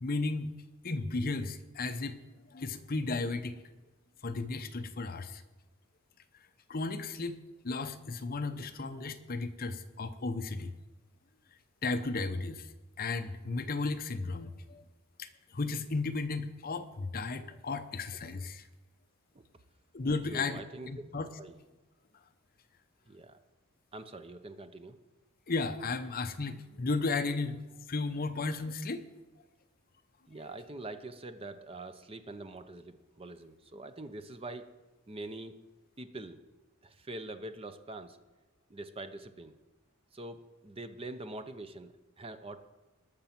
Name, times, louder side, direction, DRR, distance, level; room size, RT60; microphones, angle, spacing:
voice 1, 0.0-0.5 0.8-2.2 2.5-3.6 4.2-5.4 6.7-10.7 11.8-12.7 13.0-14.8 15.2-18.7 19.9-21.3 25.5-29.0, left 3 dB, 45° left, 9 dB, 0.7 m, -34 dB
voice 2, 20.3-20.9 21.4-21.6 23.1-23.4 23.9-25.0 30.3-34.7 35.1-35.6 36.0-36.4 36.8-38.2 38.7-39.5 40.1-42.6, right 2 dB, 25° right, 9 dB, 0.7 m, -44 dB
19.5 x 6.7 x 5.9 m, 1.1 s
head